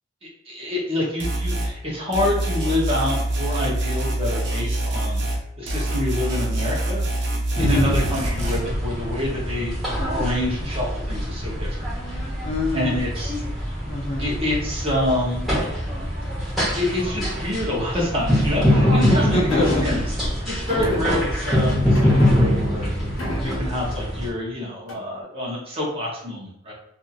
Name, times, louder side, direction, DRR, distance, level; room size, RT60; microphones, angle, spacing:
voice 1, 0.5-5.2 5.6-7.0 7.6-9.7 10.1-11.8 12.7-13.3 14.2-15.4 16.8-20.0 20.5-22.9 23.4-26.7, left 1 dB, 30° right, -4 dB, 0.9 m, -27 dB
sound 1, 1.2-1.7 2.1-5.4 5.7-8.6, right 1 dB, 60° right, 0.6 m, -25 dB
voice 2, 7.6-7.9 12.4-13.0 13.5-14.3 19.3-20.0, left 2 dB, 30° left, 0 dB, 0.4 m, -26 dB
sound 2, 7.6-24.3, equal, ahead, 1.2 m, -24 dB
sound 3, 19.5-20.1 20.7-21.5 21.9-22.8 23.2-24.0 24.9-25.2, left 1 dB, 80° left, 0.7 m, -30 dB
2.7 x 2.6 x 2.5 m, 0.74 s
head